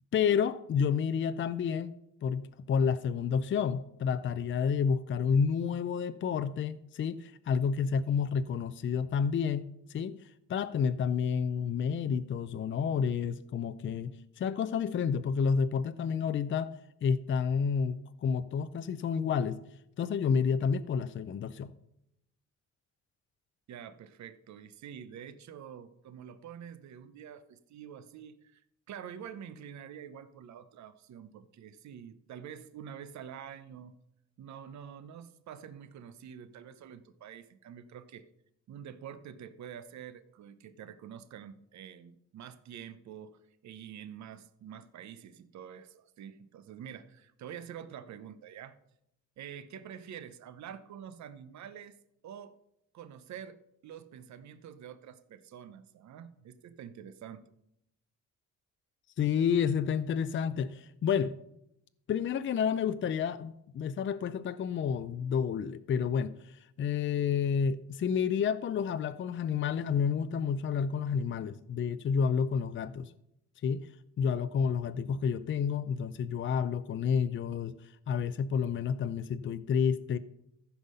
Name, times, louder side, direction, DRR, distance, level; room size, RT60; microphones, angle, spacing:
voice 1, 0.1-1.9 2.2-10.2 10.5-16.7 17.0-19.6 20.0-21.7 59.2-61.3 62.1-73.1 73.6-73.9 74.2-77.7 78.1-80.2, left 6 dB, 40° left, 12 dB, 0.5 m, -30 dB
voice 2, 23.7-33.9 34.4-38.3 38.7-48.8 49.4-52.0 52.2-52.5 52.9-57.4, right 8 dB, 65° right, 13 dB, 0.8 m, -47 dB
14.5 x 5.6 x 5.5 m, 0.80 s
cardioid pair, 90°, 30 cm